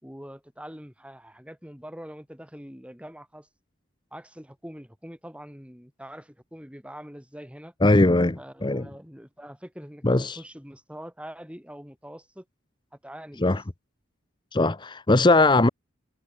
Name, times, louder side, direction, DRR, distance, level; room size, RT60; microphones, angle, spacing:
voice 1, 0.0-3.5 4.1-7.7 8.4-12.5 13.0-13.5, equal, 5° right, 7.0 m, -44 dB
voice 2, 7.8-8.9 10.0-10.4 13.4-13.6 14.5-15.7, left 2 dB, 20° left, 0.8 m, -20 dB
head